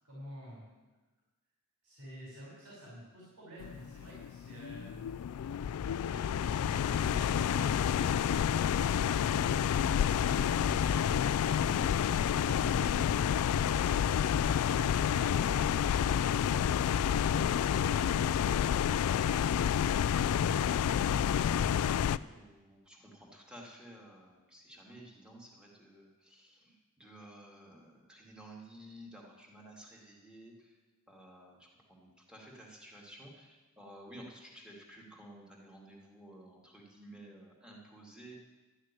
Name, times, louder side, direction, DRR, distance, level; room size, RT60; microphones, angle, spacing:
voice 1, 0.0-0.7 1.8-5.1 5.9-8.1 8.8-13.8 14.2-15.8 16.6-17.2 17.6-19.0, equal, 85° right, -6 dB, 5.0 m, -49 dB
sound 1, 3.6-22.2, left 8 dB, 75° left, 0.3 m, -29 dB
voice 2, 22.2-30.8 31.1-38.4, right 1 dB, 5° right, -3 dB, 2.4 m, -53 dB
12.5 x 6.5 x 9.7 m, 1.2 s
head